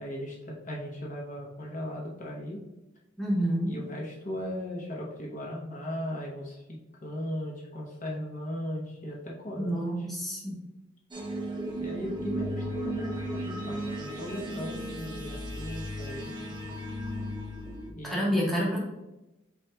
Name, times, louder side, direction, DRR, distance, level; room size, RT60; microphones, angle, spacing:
voice 1, 0.0-2.6 3.6-10.1 11.8-16.5 17.9-18.4, equal, 40° left, -3 dB, 0.8 m, -37 dB
voice 2, 3.2-3.8 9.6-10.6 18.0-18.8, equal, ahead, -5 dB, 1.2 m, -28 dB
sound 1, 11.1-17.9, equal, 25° right, 0.7 m, -35 dB
8.4 x 2.9 x 2.2 m, 0.96 s
head